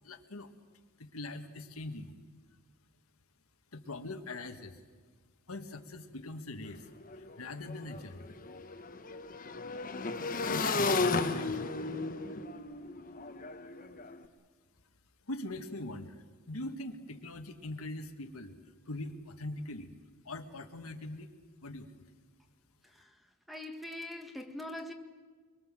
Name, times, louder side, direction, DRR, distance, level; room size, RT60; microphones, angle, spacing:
voice 1, 0.0-0.5 1.0-2.1 3.7-4.8 5.5-8.3 10.4-11.8 15.3-18.6 18.9-19.9 20.3-21.3 21.6-21.9, left 2 dB, 80° left, 1.7 m, -42 dB
Motorcycle / Engine, 6.6-6.7 7.0-14.1, left 3 dB, 40° left, 1.3 m, -34 dB
voice 2, 23.5-24.9, left 1 dB, ahead, 1.6 m, -42 dB
24.5 x 23.5 x 7.6 m
head